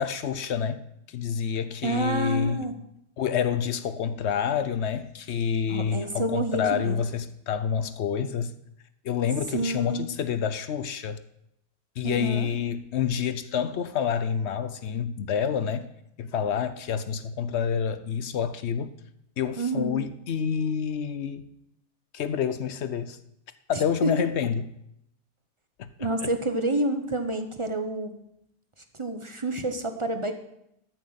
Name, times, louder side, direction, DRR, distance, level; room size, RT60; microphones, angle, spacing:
voice 1, 0.0-2.7 3.2-8.5 9.0-11.2 12.0-15.9 16.2-19.0 19.4-21.5 22.1-23.2 23.7-24.7 25.8-26.3, left 7 dB, 65° left, 0.7 m, -28 dB
voice 2, 1.8-2.7 5.7-7.0 9.5-10.1 12.0-12.5 19.6-20.0 24.0-24.1 26.0-28.2 28.9-30.3, right 2 dB, 30° right, 0.6 m, -28 dB
13.5 x 7.8 x 5.6 m
omnidirectional pair, 1.8 m